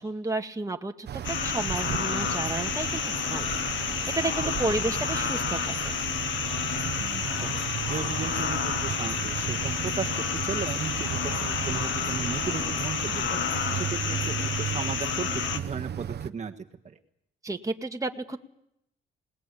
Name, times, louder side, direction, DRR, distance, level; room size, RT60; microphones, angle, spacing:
voice 1, 0.0-3.5 4.2-5.9 17.4-18.4, right 2 dB, 15° right, 3 dB, 1.9 m, -32 dB
sound 1, 1.1-16.3, right 10 dB, 55° right, 1.0 m, -34 dB
sound 2, 1.2-15.6, left 7 dB, 70° left, 1.8 m, -30 dB
voice 2, 4.7-5.0 7.0-7.5 7.9-13.5 13.7-17.0, right 5 dB, 35° right, 3 dB, 1.6 m, -36 dB
27.0 x 20.0 x 8.5 m, 0.80 s
cardioid pair, 90°, 20 cm